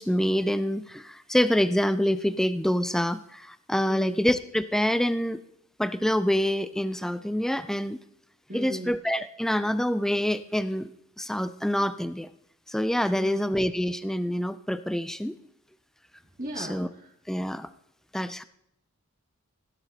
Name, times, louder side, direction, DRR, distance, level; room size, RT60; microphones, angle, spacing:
voice 1, 0.0-5.4 5.8-8.0 8.5-10.9 11.2-12.3 12.7-15.4 16.6-16.9 17.3-17.7 18.1-18.4, equal, ahead, 12 dB, 0.3 m, -26 dB
voice 2, 3.9-4.2 8.5-9.0 13.1-13.5 16.4-16.8, equal, 40° right, -1 dB, 2.6 m, -36 dB
16.5 x 11.0 x 2.9 m, 0.79 s
head